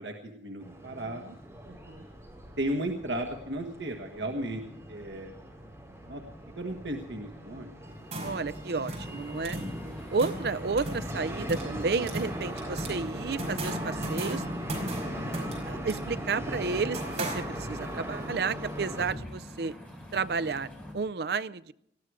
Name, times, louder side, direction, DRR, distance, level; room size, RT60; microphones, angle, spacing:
voice 1, 0.0-1.2 2.6-4.6 4.9-5.3 6.1-6.2 6.6-7.7 12.0-12.1, right 1 dB, 85° right, 3 dB, 1.4 m, -34 dB
sound 1, 0.6-19.1, equal, 15° right, 4.4 m, -40 dB
voice 2, 0.6-1.4 1.7-2.1 8.2-9.6 10.1-14.4 15.4-19.7 20.1-21.7, right 4 dB, 65° right, 16 dB, 0.5 m, -32 dB
sound 2, 7.8-18.0, right 1 dB, 40° right, 5.0 m, -38 dB
sound 3, 8.8-20.9, left 1 dB, 5° left, 4.3 m, -45 dB
19.0 x 14.0 x 4.8 m, 0.73 s
head